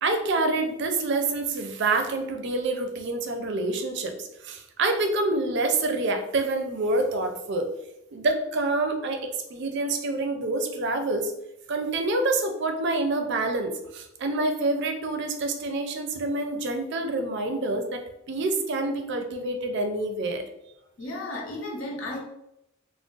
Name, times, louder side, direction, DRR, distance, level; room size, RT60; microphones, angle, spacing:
voice 1, 0.0-7.7 8.1-11.3 11.7-18.0 18.3-20.4, right 2 dB, 60° right, 6 dB, 0.4 m, -27 dB
voice 2, 21.0-22.2, left 1 dB, 75° left, -1 dB, 0.7 m, -34 dB
2.4 x 2.0 x 3.7 m, 0.85 s
head